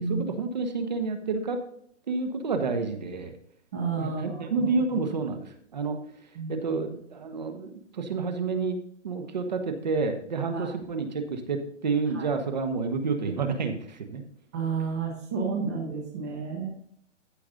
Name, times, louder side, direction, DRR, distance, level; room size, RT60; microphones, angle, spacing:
voice 1, 0.0-1.6 2.1-3.3 4.0-6.0 6.5-8.8 9.0-14.2, right 4 dB, 35° right, 7 dB, 1.3 m, -29 dB
voice 2, 3.7-4.7 6.4-6.8 10.5-10.7 12.1-12.3 14.5-16.7, right 5 dB, 15° right, -2 dB, 0.9 m, -31 dB
14.5 x 5.1 x 3.9 m, 0.67 s
hypercardioid pair, 180°, 36 cm